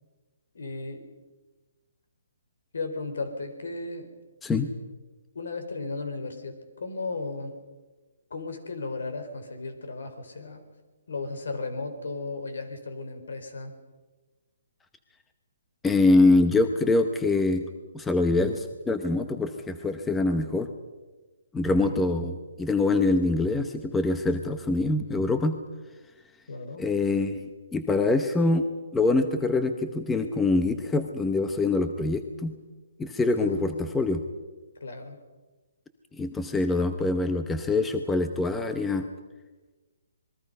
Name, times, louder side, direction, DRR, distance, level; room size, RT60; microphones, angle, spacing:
voice 1, 0.5-1.1 2.7-4.1 5.3-7.5 8.3-10.6 11.1-13.7 21.6-22.3 26.5-26.9 33.4-34.0 34.8-35.2, left 3 dB, 75° left, 8 dB, 4.6 m, -35 dB
voice 2, 15.8-17.7 17.9-20.7 21.5-25.6 26.8-27.4 27.7-28.6 28.9-32.5 33.0-34.2 36.2-39.1, left 2 dB, 5° left, 8 dB, 0.8 m, -24 dB
27.0 x 21.5 x 5.5 m, 1.3 s
hypercardioid pair, 165°, 0 cm